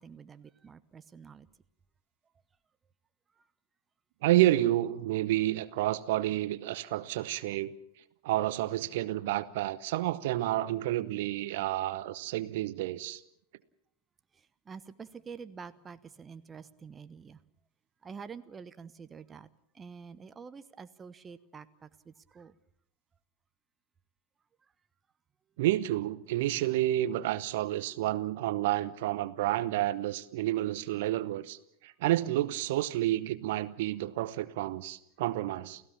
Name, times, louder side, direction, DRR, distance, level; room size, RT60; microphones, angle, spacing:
voice 1, 0.0-1.5 3.4-3.5 14.3-17.4 18.0-19.5 19.7-22.6, right 6 dB, 20° right, 0.9 m, -47 dB
voice 2, 4.2-7.7 8.2-13.2 25.6-31.6 31.8-35.8, right 15 dB, 50° right, 0.9 m, -30 dB
29.5 x 16.0 x 7.2 m
figure-of-eight pair, 90°, 0 cm